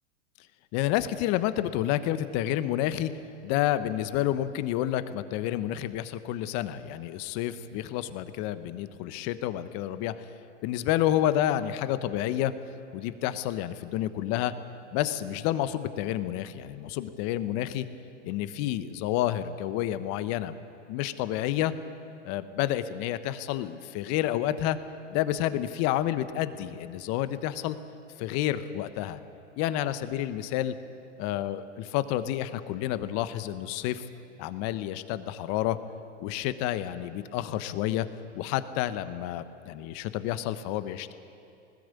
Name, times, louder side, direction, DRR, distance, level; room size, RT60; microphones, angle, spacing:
voice 1, 0.7-3.1 3.4-10.1 10.6-12.5 12.9-14.5 14.9-17.9 18.2-20.5 20.9-21.7 22.2-24.8 25.1-27.8 28.2-29.2 29.6-30.7 31.2-34.0 34.4-35.8 36.2-38.1 38.3-41.1, left 12 dB, 45° left, 12 dB, 1.2 m, -29 dB
20.0 x 19.5 x 8.4 m, 2.6 s
hypercardioid pair, 120°, 36 cm